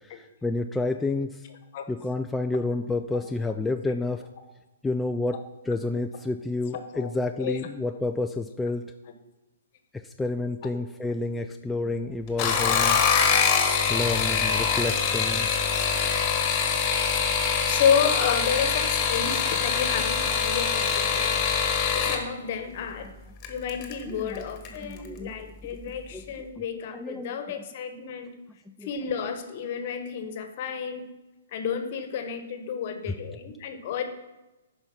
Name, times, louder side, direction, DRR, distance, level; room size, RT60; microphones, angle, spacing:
voice 1, 0.4-1.3 1.9-4.2 4.8-5.4 5.7-8.8 10.2-13.0 13.9-15.5 23.8-24.4 24.8-25.4 26.1-26.2 26.9-27.4 28.8-28.9, left 2 dB, 5° left, 5 dB, 0.3 m, -29 dB
voice 2, 6.7-7.1 7.4-7.6 10.6-10.7 17.7-21.5 21.9-23.1 23.5-28.3 28.8-31.1 31.5-34.0, left 7 dB, 50° left, 8 dB, 1.1 m, -30 dB
sound 1, 12.3-22.2 23.4-23.9 24.3-24.8 25.0-25.1, left 6 dB, 30° left, 1.4 m, -24 dB
8.9 x 5.4 x 5.7 m, 1.1 s
hypercardioid pair, 130°, 0 cm